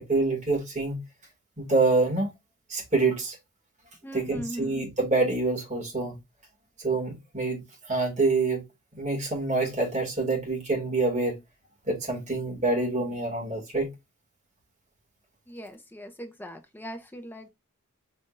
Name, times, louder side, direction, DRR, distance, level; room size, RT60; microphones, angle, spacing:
voice 1, 0.1-1.0 1.6-2.3 2.7-3.4 4.1-6.2 6.8-7.6 7.9-8.6 9.0-11.4 11.9-13.9, right 3 dB, 35° right, 2.3 m, -26 dB
voice 2, 4.0-4.8 15.5-17.5, equal, 10° left, 0.8 m, -40 dB
5.3 x 3.4 x 2.6 m
head